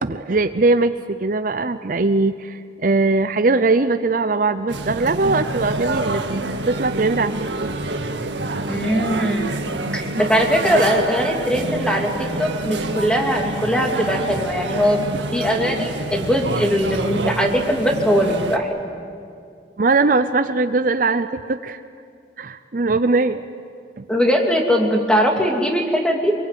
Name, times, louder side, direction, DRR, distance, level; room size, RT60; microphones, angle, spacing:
voice 1, 0.0-7.7 10.7-10.8 19.8-21.8 22.4-23.4 24.0-24.1, right 3 dB, 50° right, 10 dB, 0.6 m, -20 dB
sound 1, 4.7-18.6, right 2 dB, 85° right, 1.8 m, -27 dB
voice 2, 8.7-12.1 12.4-15.0 15.3-18.7 24.1-26.3, equal, 5° left, 1 dB, 2.7 m, -20 dB
25.0 x 23.0 x 9.3 m, 2.3 s
head